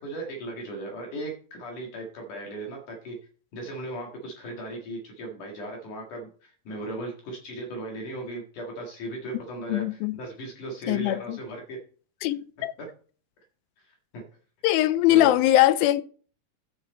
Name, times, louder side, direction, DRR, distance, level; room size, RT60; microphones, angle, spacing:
voice 1, 0.0-3.2 3.5-11.8 12.8-12.9 13.8-14.2 15.1-15.3, right 1 dB, 60° left, 3.3 m, -37 dB
voice 2, 9.7-10.2 10.9-11.4 12.2-12.7 14.6-16.0, left 14 dB, 85° left, 2.4 m, -21 dB
14.0 x 6.0 x 4.3 m
omnidirectional pair, 4.2 m